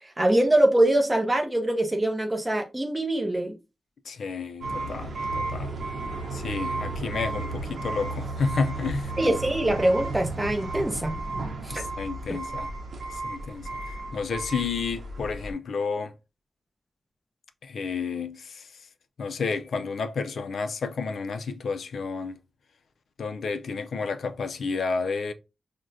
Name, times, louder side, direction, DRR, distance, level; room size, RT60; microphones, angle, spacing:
voice 1, 0.0-3.5 9.2-11.1 11.6-11.8, right 1 dB, 15° right, 0.6 m, -23 dB
voice 2, 4.1-5.7 6.3-9.1 11.7-12.7 13.1-16.1 17.6-18.7 19.2-22.4 23.2-25.3, left 4 dB, 70° left, 0.4 m, -31 dB
sound 1, 4.6-15.5, right 2 dB, 55° right, 0.7 m, -33 dB
6.0 x 2.1 x 2.5 m
wide cardioid pair, 180°, 0 cm